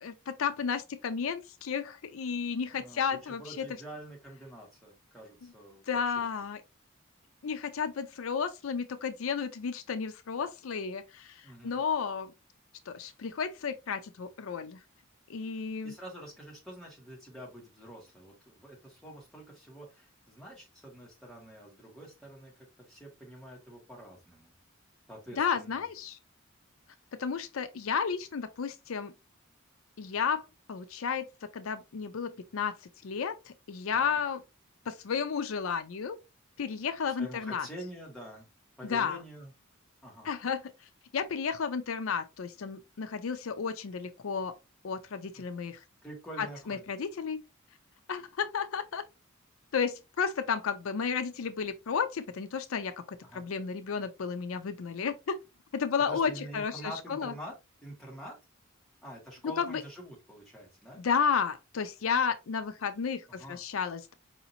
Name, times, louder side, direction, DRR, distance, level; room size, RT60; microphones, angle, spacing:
voice 1, 0.0-3.6 5.9-6.6 7.4-12.3 12.9-14.8 15.3-15.9 25.4-26.2 27.2-29.1 30.0-31.3 31.5-32.8 33.0-34.4 34.9-36.2 36.6-37.7 38.8-39.2 40.2-44.5 44.8-45.8 46.4-47.4 48.1-49.0 49.7-55.4 55.7-57.3 59.6-59.8 61.0-64.1, left 6 dB, 80° left, 0.5 m, -32 dB
voice 2, 2.7-6.2 11.4-11.8 15.8-22.5 22.8-24.5 25.1-25.8 33.9-34.2 37.2-38.5 38.8-39.5 40.0-40.3 45.3-45.4 46.0-46.8 53.2-53.4 56.1-57.5 57.8-58.4 59.0-61.0 63.3-63.6, equal, ahead, 1.7 m, -46 dB
4.9 x 2.8 x 2.7 m
head